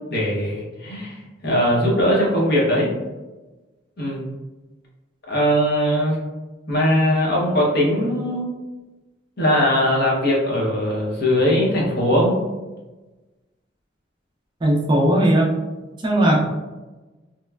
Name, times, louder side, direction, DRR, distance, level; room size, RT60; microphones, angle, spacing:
voice 1, 0.1-1.2 1.4-2.9 4.0-4.3 5.3-6.2 6.7-8.4 9.4-12.4, equal, 55° left, -4 dB, 0.8 m, -20 dB
voice 2, 14.6-15.5 16.0-16.4, right 1 dB, 25° right, -2 dB, 0.3 m, -17 dB
2.9 x 2.1 x 2.2 m, 1.2 s
head